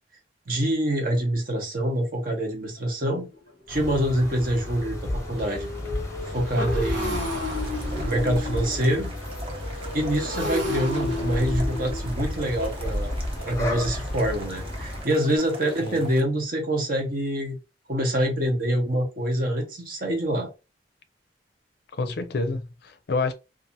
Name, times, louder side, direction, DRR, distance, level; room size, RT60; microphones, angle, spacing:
voice 1, 0.5-3.3 3.7-5.7 6.2-7.3 8.0-9.1 9.9-13.1 13.5-17.6 17.9-20.5, right 1 dB, 50° right, 0.9 m, -25 dB
Motorcycle, 2.8-2.9 3.3-3.5 3.8-15.4, left 2 dB, 90° right, 1.1 m, -34 dB
sound 1, 3.7-15.0, left 1 dB, 15° left, 0.7 m, -32 dB
sound 2, 7.0-16.2, right 2 dB, 30° right, 0.6 m, -42 dB
voice 2, 22.0-23.3, left 3 dB, 60° left, 0.5 m, -28 dB
2.6 x 2.4 x 2.6 m
head